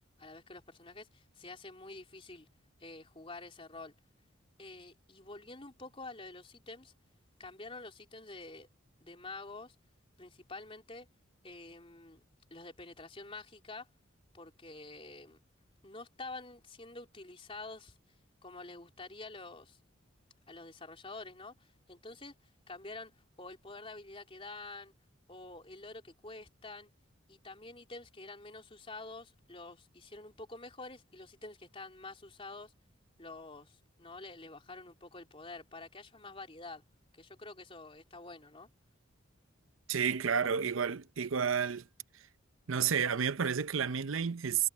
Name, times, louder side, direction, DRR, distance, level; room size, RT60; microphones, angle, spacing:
voice 1, 0.2-2.5 2.8-3.9 4.6-6.9 7.4-8.7 9.0-9.8 10.2-11.1 11.4-12.2 12.5-13.9 14.3-15.4 15.8-18.0 18.4-19.8 20.5-24.9 25.3-26.9 27.3-32.7 33.2-36.8 37.1-38.7, left 3 dB, 30° left, 3.8 m, -48 dB
voice 2, 39.9-41.9 42.7-44.7, right 7 dB, 85° right, 0.7 m, -31 dB
head